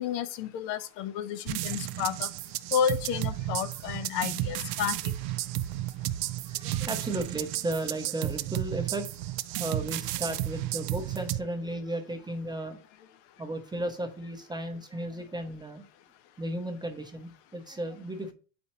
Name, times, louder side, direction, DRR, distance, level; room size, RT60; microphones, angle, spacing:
voice 1, 0.0-2.3 2.7-5.0, left 8 dB, 70° left, 0.7 m, -31 dB
sound 1, 1.5-11.4, right 15 dB, 70° right, 0.6 m, -33 dB
voice 2, 6.2-9.1 9.6-12.8 13.4-15.8 16.4-18.3, right 1 dB, 10° right, 0.6 m, -35 dB
8.1 x 4.3 x 2.9 m
supercardioid pair, 120°, 50 cm